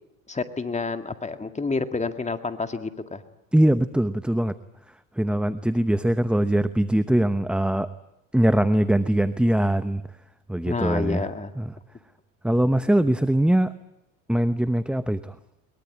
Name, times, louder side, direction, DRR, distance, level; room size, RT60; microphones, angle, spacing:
voice 1, 0.3-3.2 10.7-11.5, left 3 dB, 15° left, 8 dB, 2.1 m, -29 dB
voice 2, 3.5-4.6 5.1-7.9 8.3-10.0 10.5-11.3 11.6-11.7 12.4-13.7 14.3-15.4, right 1 dB, ahead, 12 dB, 0.9 m, -22 dB
22.5 x 22.0 x 9.7 m, 0.87 s
hypercardioid pair, 90°, 42 cm